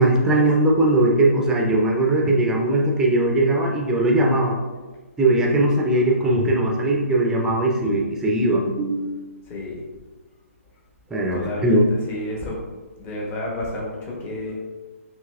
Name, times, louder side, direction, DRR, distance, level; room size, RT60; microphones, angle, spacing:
voice 1, 0.0-4.6 5.2-9.1 11.1-11.8, right 1 dB, 5° right, -1 dB, 0.5 m, -19 dB
voice 2, 9.5-9.8 11.3-11.8 12.1-12.6 13.0-14.6, left 1 dB, 25° left, -3 dB, 1.0 m, -30 dB
5.6 x 2.9 x 2.4 m, 1.3 s
hypercardioid pair, 145°, 8 cm